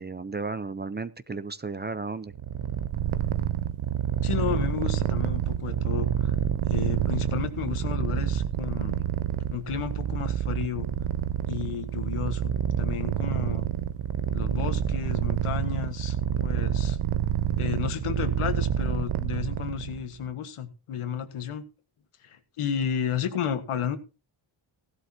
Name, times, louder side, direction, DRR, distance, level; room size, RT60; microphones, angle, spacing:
voice 1, 0.0-2.3, right 4 dB, 20° right, 14 dB, 0.6 m, -34 dB
Purr, 2.3-20.1, right 10 dB, 75° right, 0.8 m, -28 dB
voice 2, 4.2-6.3 6.7-9.0 9.5-10.9 11.5-13.7 14.3-17.0 17.6-21.6 22.2-24.0, left 8 dB, 85° left, 8 dB, 1.6 m, -32 dB
16.0 x 11.5 x 2.8 m, 0.30 s
cardioid pair, 100°, 49 cm